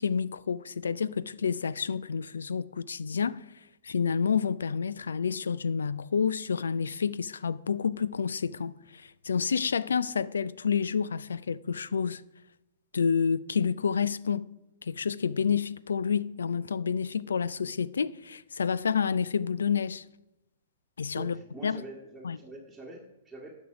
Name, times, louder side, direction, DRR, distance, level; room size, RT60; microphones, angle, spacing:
voice 1, 0.0-3.4 3.8-12.2 12.9-14.5 14.8-20.0 21.0-21.4 21.6-21.8 22.2-22.4, left 6 dB, 70° left, 0.4 m, -29 dB
voice 2, 21.1-23.6, right 2 dB, ahead, 1.8 m, -45 dB
11.0 x 6.2 x 5.8 m
figure-of-eight pair, 115°, 0 cm